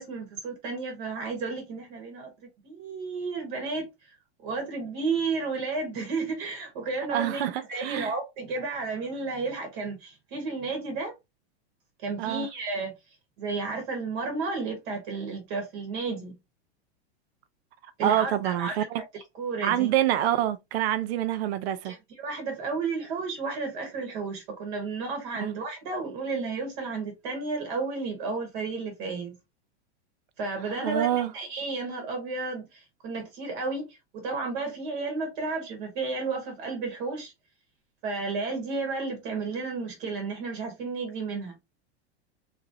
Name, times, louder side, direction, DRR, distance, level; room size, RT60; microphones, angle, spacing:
voice 1, 0.0-2.3 2.6-3.9 4.4-7.4 7.7-11.1 12.0-12.9 13.4-16.3 18.0-19.9 21.8-29.4 30.4-37.3 38.0-41.6, right 4 dB, 45° right, 1.0 m, -32 dB
voice 2, 7.1-8.1 12.2-12.5 18.0-19.0 19.6-21.9 25.3-25.5 30.7-31.3, right 12 dB, 65° right, 0.5 m, -26 dB
3.0 x 2.5 x 2.6 m
supercardioid pair, 150°, 34 cm